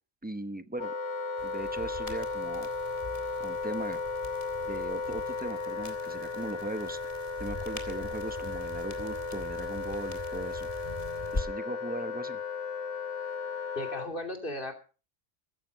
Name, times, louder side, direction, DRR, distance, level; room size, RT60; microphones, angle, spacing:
voice 1, 0.2-0.9 1.4-2.7 3.4-4.0 4.6-10.7 11.3-12.4, right 2 dB, 10° right, 11 dB, 0.9 m, -39 dB
Wind instrument woodwind instrument, 0.8-14.1, left 4 dB, 70° left, 1.5 m, -35 dB
sound 1, 1.4-11.4, left 2 dB, 30° left, 2.1 m, -43 dB
voice 2, 13.8-14.7, left 1 dB, 45° left, 5 dB, 2.9 m, -36 dB
15.0 x 13.5 x 5.2 m, 0.36 s
omnidirectional pair, 1.3 m